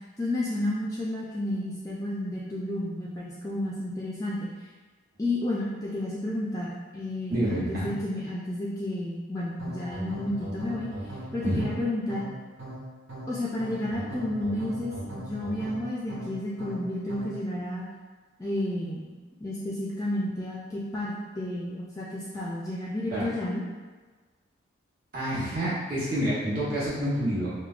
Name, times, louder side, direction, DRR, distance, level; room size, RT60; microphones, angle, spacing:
voice 1, 0.2-4.5 5.2-10.9 11.3-12.2 13.3-17.8 18.4-19.1 19.4-23.6, left 1 dB, 15° left, -6 dB, 0.3 m, -31 dB
voice 2, 7.3-7.9 11.4-11.6 23.1-23.3 25.1-27.5, right 1 dB, 45° right, -8 dB, 1.0 m, -28 dB
sound 1, 9.6-17.5, right 1 dB, 70° right, 0.6 m, -39 dB
4.7 x 2.1 x 2.4 m, 1.4 s
head